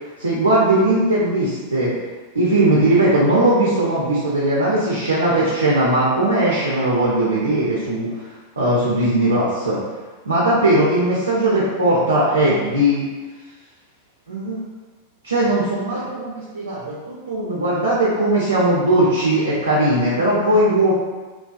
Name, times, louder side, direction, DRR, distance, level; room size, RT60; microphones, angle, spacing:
voice 1, 0.2-1.9 2.3-8.1 8.6-9.8 10.2-13.0 14.3-14.6 15.2-20.9, right 1 dB, 75° right, -6 dB, 0.5 m, -18 dB
2.5 x 2.2 x 2.3 m, 1.3 s
figure-of-eight pair, 90°, 0 cm